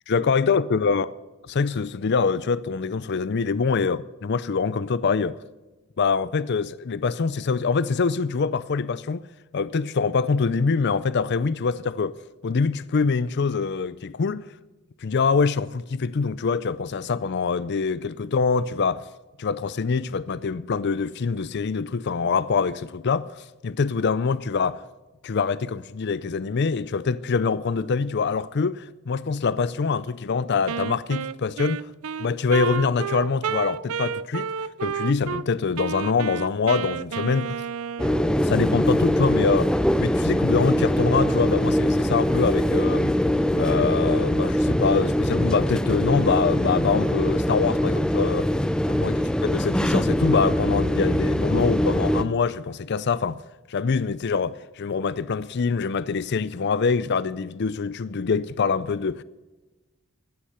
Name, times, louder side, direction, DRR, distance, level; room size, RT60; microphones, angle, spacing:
voice 1, 0.1-1.1 1.5-5.4 6.0-9.2 9.5-12.2 12.4-14.5 15.0-19.0 19.4-24.8 25.2-31.9 32.2-34.5 34.8-37.6 38.4-39.7 40.0-43.2 43.6-48.5 48.9-53.4 53.7-59.2, left 5 dB, 50° left, 0.5 m, -24 dB
Wind instrument woodwind instrument, 30.7-35.4 35.8-38.4, right 7 dB, 75° right, 0.5 m, -31 dB
sound 1, 38.0-52.2, equal, 5° left, 0.5 m, -22 dB
15.5 x 11.5 x 6.7 m
head